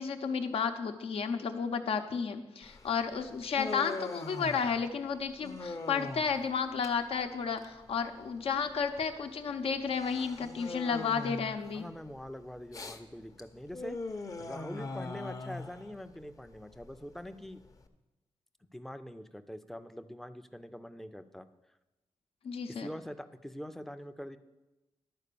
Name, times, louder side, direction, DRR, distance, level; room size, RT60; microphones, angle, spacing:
voice 1, 0.0-11.9 22.4-22.9, left 6 dB, 80° left, 7 dB, 0.8 m, -32 dB
Human voice, 2.6-17.9, left 3 dB, 35° left, 0.7 m, -42 dB
voice 2, 11.7-14.0 14.4-17.6 18.7-21.5 22.7-24.4, equal, 5° left, 10 dB, 0.4 m, -44 dB
11.0 x 4.6 x 6.7 m, 1.0 s
wide cardioid pair, 130°, 10 cm